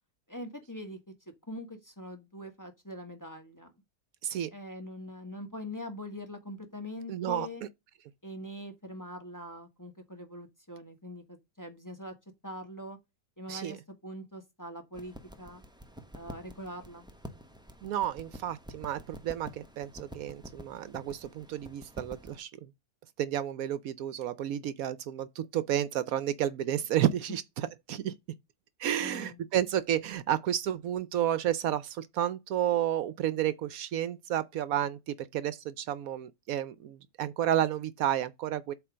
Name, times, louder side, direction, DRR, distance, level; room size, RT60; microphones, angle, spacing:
voice 1, 0.3-1.0 1.5-3.7 4.5-7.6 8.2-12.1 12.4-13.0 13.4-15.6 16.1-17.1 28.9-29.4, left 1 dB, 15° left, 1.3 m, -43 dB
voice 2, 4.2-4.5 7.1-7.5 13.5-13.8 17.8-22.7 23.2-28.1 28.8-38.7, right 11 dB, 75° right, 1.0 m, -31 dB
sound 1, 14.9-22.4, equal, 5° right, 0.7 m, -48 dB
8.0 x 3.1 x 5.0 m
omnidirectional pair, 1.6 m